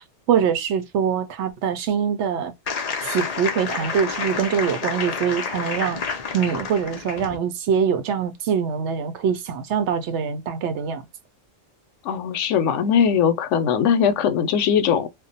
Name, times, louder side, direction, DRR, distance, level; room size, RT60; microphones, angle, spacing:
voice 1, 0.3-2.5 3.0-6.0 6.3-11.0, right 7 dB, 70° right, 0.8 m, -23 dB
sound 1, 2.7-7.4, left 5 dB, 55° left, 0.4 m, -29 dB
voice 2, 12.0-15.1, left 7 dB, 75° left, 0.9 m, -20 dB
2.4 x 2.1 x 2.5 m
omnidirectional pair, 1.3 m